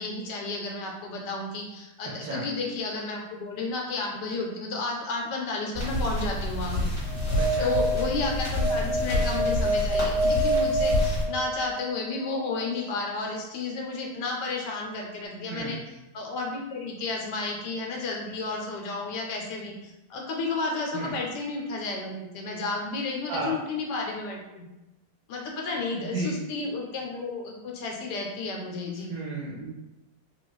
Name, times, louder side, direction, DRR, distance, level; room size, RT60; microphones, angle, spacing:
voice 1, 0.0-6.9 7.6-15.8 16.1-19.7 20.1-24.7 25.3-29.2, left 3 dB, 75° left, 0 dB, 1.3 m, -32 dB
sound 1, 5.7-11.2, left 1 dB, 35° left, 1.5 m, -28 dB
sound 2, 7.1-11.9, right 1 dB, 50° right, 0.6 m, -27 dB
voice 2, 7.4-7.7 15.5-15.8 20.9-21.1 23.3-23.6 25.9-26.3 29.1-29.7, right 3 dB, 85° right, -7 dB, 1.4 m, -33 dB
3.8 x 2.4 x 3.1 m, 0.96 s
omnidirectional pair, 1.9 m